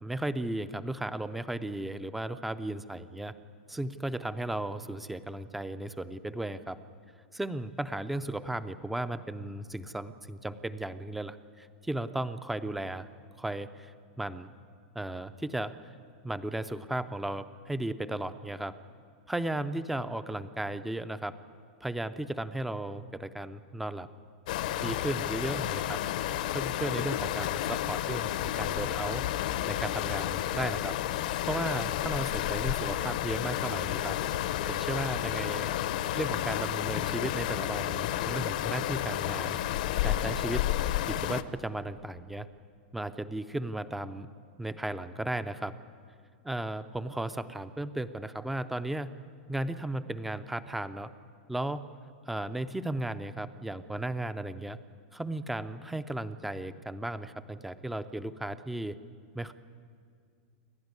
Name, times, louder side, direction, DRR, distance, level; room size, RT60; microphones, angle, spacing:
voice 1, 0.0-3.3 3.7-6.8 7.3-13.1 13.4-14.5 15.0-15.8 16.2-18.7 19.3-21.3 21.8-24.1 24.8-26.0 26.5-29.2 29.7-31.0 31.5-34.2 34.7-35.7 36.2-39.6 40.0-40.7 41.1-42.5 42.9-44.3 44.6-45.7 46.4-49.1 49.5-51.1 51.5-51.9 52.3-54.8 55.1-59.0 59.3-59.5, right 1 dB, ahead, 12 dB, 0.5 m, -35 dB
sound 1, 24.5-41.4, left 12 dB, 50° left, 0.7 m, -31 dB
28.5 x 12.5 x 9.6 m, 2.2 s
supercardioid pair, 180°, 6 cm